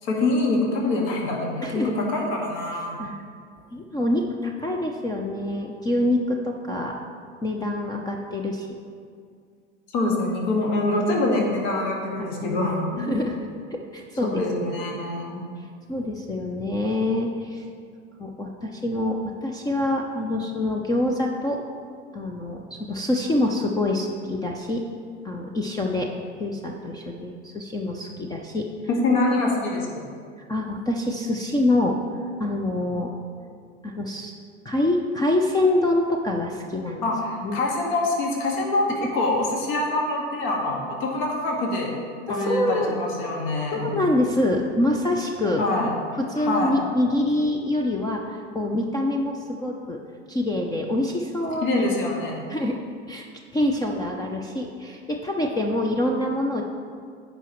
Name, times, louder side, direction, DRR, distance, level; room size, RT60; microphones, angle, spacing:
voice 1, 0.0-3.0 9.9-13.1 14.3-15.4 28.9-29.9 37.0-41.9 42.3-43.9 45.6-45.9 46.4-46.7 51.6-52.3, left 2 dB, 50° left, -1 dB, 1.8 m, -25 dB
voice 2, 3.7-6.9 7.4-8.7 12.4-13.4 13.7-14.4 15.9-17.6 18.2-21.6 22.1-24.9 25.2-26.1 26.4-28.7 30.5-32.0 32.4-33.1 33.8-34.3 34.6-37.1 37.4-37.6 42.3-43.0 43.7-45.9 46.2-50.0 50.3-51.9 52.5-52.8 53.1-53.3 53.5-56.6, left 1 dB, 10° left, 1 dB, 0.6 m, -25 dB
15.5 x 5.3 x 3.1 m, 2.1 s
figure-of-eight pair, 85°, 36 cm